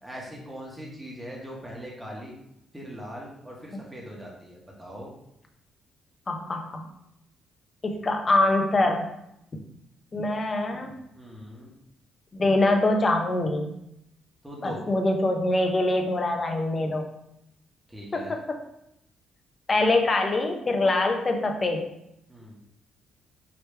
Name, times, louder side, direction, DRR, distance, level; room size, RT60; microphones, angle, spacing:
voice 1, 0.0-2.3 2.7-5.1 11.1-11.7 14.4-14.8 17.9-18.3 22.3-22.6, equal, 10° right, -3 dB, 1.4 m, -40 dB
voice 2, 6.3-6.9 7.8-9.1 10.1-10.9 12.3-13.7 14.6-17.1 18.1-18.6 19.7-21.8, left 2 dB, 30° left, 4 dB, 0.8 m, -24 dB
5.0 x 3.1 x 3.3 m, 0.80 s
cardioid pair, 90°, 0 cm